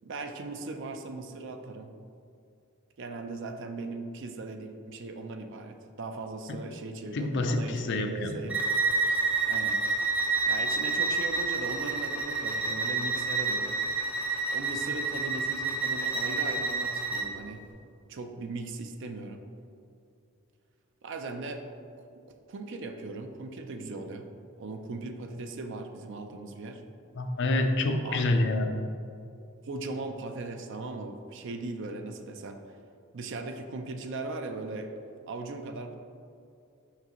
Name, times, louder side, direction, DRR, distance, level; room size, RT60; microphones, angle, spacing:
voice 1, 0.0-1.9 3.0-8.6 9.4-9.8 10.5-13.8 14.5-17.6 18.1-19.4 21.0-21.6 22.0-24.3 24.6-26.8 28.0-28.3 29.6-32.6 33.1-34.9 35.3-36.0, right 3 dB, 55° right, 6 dB, 0.5 m, -38 dB
voice 2, 7.1-8.4 27.2-28.7, left 2 dB, 55° left, 5 dB, 0.5 m, -27 dB
Bowed string instrument, 8.5-17.3, right 4 dB, 5° right, 0.5 m, -29 dB
5.8 x 5.8 x 3.0 m, 2.5 s
head